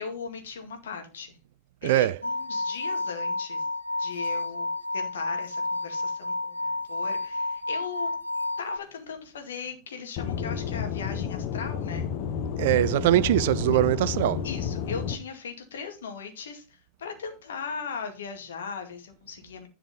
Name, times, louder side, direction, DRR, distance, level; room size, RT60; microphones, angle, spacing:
voice 1, 0.0-1.4 1.8-3.7 4.0-8.1 8.6-12.1 13.7-13.8 14.4-19.7, left 6 dB, 65° left, 2.1 m, -38 dB
voice 2, 1.8-2.2 12.6-14.4, right 14 dB, 55° right, 0.4 m, -22 dB
sound 1, 2.2-8.8, left 2 dB, 85° left, 0.5 m, -30 dB
Aircraft / Engine, 10.2-15.2, left 7 dB, 40° left, 1.2 m, -31 dB
11.0 x 4.9 x 5.1 m
figure-of-eight pair, 90°, 0 cm